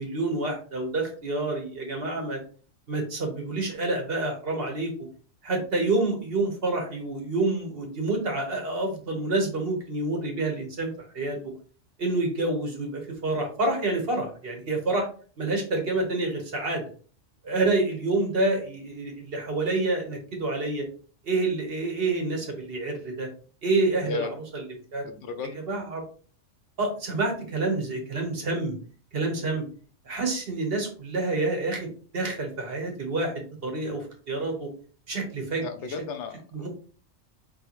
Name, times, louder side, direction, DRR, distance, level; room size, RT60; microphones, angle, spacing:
voice 1, 0.0-2.4 2.9-4.9 5.4-11.4 12.0-15.1 15.4-16.8 17.4-20.9 21.2-23.3 23.6-24.6 24.9-25.1 25.7-26.0 26.8-28.8 29.1-29.6 30.0-34.7 35.1-35.6 36.5-36.7, right 2 dB, 55° right, 2 dB, 1.3 m, -28 dB
voice 2, 25.0-25.6 35.6-36.7, left 4 dB, 75° left, 8 dB, 0.8 m, -34 dB
4.1 x 3.4 x 3.0 m, 0.42 s
omnidirectional pair, 1.2 m